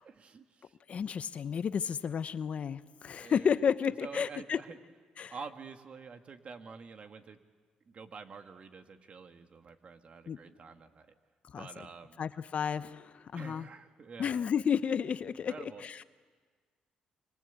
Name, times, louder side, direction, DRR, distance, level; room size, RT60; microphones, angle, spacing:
voice 1, 0.0-0.8 3.2-3.6 4.0-4.8 5.3-7.4 7.9-11.1 11.6-12.2 13.3-14.5 15.3-15.8, right 5 dB, 50° right, 7 dB, 1.8 m, -48 dB
voice 2, 0.9-4.6 5.2-5.3 10.3-10.4 11.5-11.7 12.2-13.7 14.2-16.0, left 7 dB, 55° left, 14 dB, 0.8 m, -32 dB
26.5 x 25.5 x 8.2 m, 1.5 s
cardioid pair, 75°, 3 cm